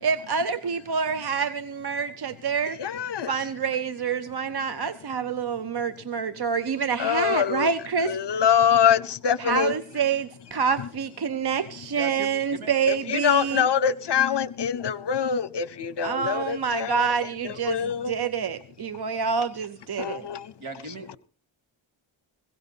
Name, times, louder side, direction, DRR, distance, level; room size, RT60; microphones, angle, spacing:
voice 1, 0.0-2.9 3.3-8.4 9.4-13.7 16.0-17.8 18.1-20.3, right 6 dB, 50° right, 0.7 m, -27 dB
voice 2, 2.8-3.3 7.0-7.7 8.0-9.7 12.9-17.1 17.4-18.1 20.0-20.5, left 8 dB, 55° left, 0.7 m, -24 dB
voice 3, 11.9-12.3 12.6-12.7 20.6-21.2, right 3 dB, 75° right, 2.1 m, -37 dB
21.5 x 16.5 x 2.7 m
wide cardioid pair, 115°, 50 cm